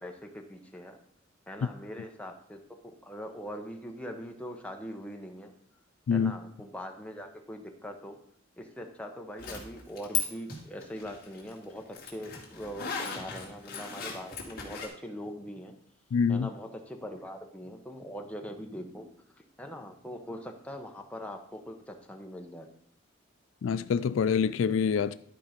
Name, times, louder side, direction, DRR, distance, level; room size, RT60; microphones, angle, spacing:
voice 1, 0.0-1.0 1.5-5.5 6.1-8.2 8.6-15.7 16.3-19.1 19.6-22.7, equal, 5° left, 1.0 m, -42 dB
Zipper (clothing), 9.4-10.2 10.5-14.9, left 6 dB, 50° left, 2.1 m, -36 dB
voice 2, 16.1-16.5 23.6-25.1, left 6 dB, 75° left, 0.3 m, -26 dB
11.5 x 4.6 x 5.1 m
head